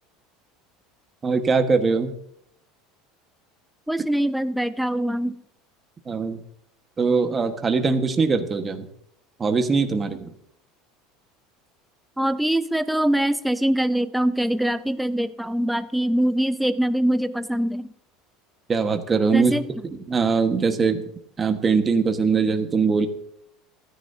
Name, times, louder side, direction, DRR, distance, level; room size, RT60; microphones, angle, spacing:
voice 1, 1.2-2.1 6.1-6.4 7.0-8.9 9.4-10.3 18.7-19.5 19.8-21.0 21.4-23.1, right 4 dB, 20° right, 6 dB, 1.5 m, -21 dB
voice 2, 3.9-5.4 12.2-17.9 19.3-19.6, right 1 dB, ahead, 12 dB, 0.5 m, -23 dB
29.0 x 10.0 x 2.8 m, 0.71 s
supercardioid pair, 145°, 0 cm